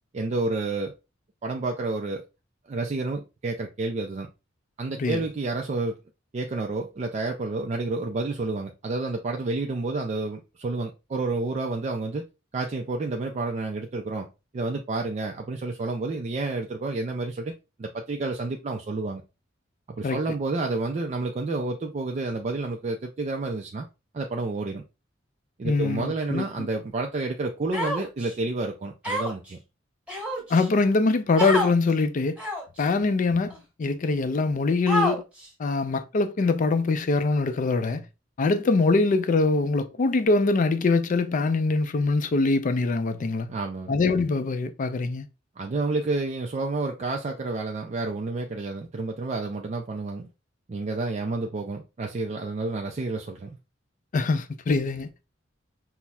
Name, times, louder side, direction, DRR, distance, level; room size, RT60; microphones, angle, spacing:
voice 1, 0.1-0.9 1.4-2.2 2.7-4.3 4.8-6.0 6.3-12.3 12.5-14.3 14.5-19.2 20.0-23.9 24.1-24.8 25.6-29.6 43.5-43.9 45.6-50.3 50.7-53.6, right 3 dB, 35° right, 0.4 m, -30 dB
voice 2, 25.6-26.7 30.5-32.4 32.8-35.2 35.6-38.0 38.4-43.5 43.9-45.3 54.1-55.1, left 3 dB, 40° left, 0.4 m, -23 dB
Human voice, 27.7-28.3 29.0-29.5 30.1-30.7 31.4-31.7 32.4-32.8 33.5-33.6 34.9-35.5, equal, 5° right, 1.4 m, -28 dB
5.6 x 2.1 x 2.2 m
head